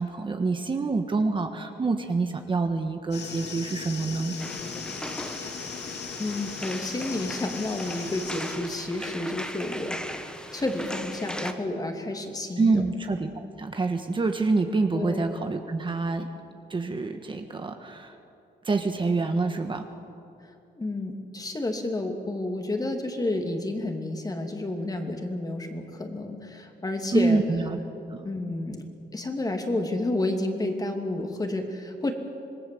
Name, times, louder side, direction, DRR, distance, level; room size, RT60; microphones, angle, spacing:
voice 1, 0.0-4.3 12.6-16.3 16.7-18.1 18.6-19.8 27.1-27.8 28.1-28.2, right 3 dB, 30° right, 5 dB, 1.4 m, -26 dB
sound 1, 3.1-8.6, left 5 dB, 70° left, 2.9 m, -38 dB
sound 2, 4.4-11.5, equal, 5° left, 1.5 m, -38 dB
voice 2, 6.2-10.0 10.5-12.8 14.9-15.3 20.8-27.4 28.2-28.8 29.1-32.1, left 2 dB, 20° left, 4 dB, 2.7 m, -30 dB
26.5 x 20.5 x 7.8 m, 2.6 s
cardioid pair, 125°, 18 cm